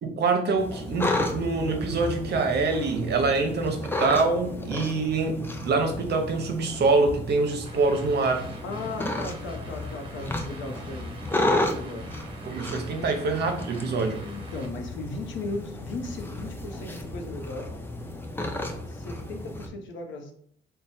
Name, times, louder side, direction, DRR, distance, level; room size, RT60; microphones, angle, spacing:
voice 1, 0.0-8.5 12.4-14.2, right 3 dB, 55° right, 5 dB, 0.7 m, -25 dB
sound 1, 0.6-19.7, left 1 dB, 10° left, 0.5 m, -33 dB
sound 2, 7.7-14.7, right 3 dB, 25° right, 1.1 m, -47 dB
voice 2, 8.6-12.1 12.9-13.1 14.2-17.7 18.9-20.3, left 2 dB, 75° left, 4 dB, 0.7 m, -37 dB
3.2 x 2.2 x 4.1 m, 0.63 s
cardioid pair, 90°, 20 cm